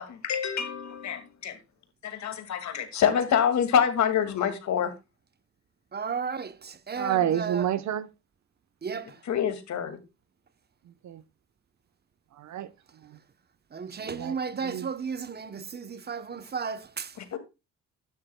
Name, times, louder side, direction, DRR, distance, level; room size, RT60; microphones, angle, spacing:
voice 1, 0.0-1.6 2.0-4.9 9.2-10.0 17.2-17.4, left 8 dB, 65° left, 2.2 m, -26 dB
voice 2, 5.9-7.7 8.8-9.2 13.7-17.1, right 5 dB, 35° right, 0.9 m, -34 dB
voice 3, 7.0-8.1 10.8-11.2 12.3-13.2 14.0-14.9, right 10 dB, 65° right, 1.0 m, -30 dB
12.0 x 10.5 x 2.2 m
cardioid pair, 90°, 30 cm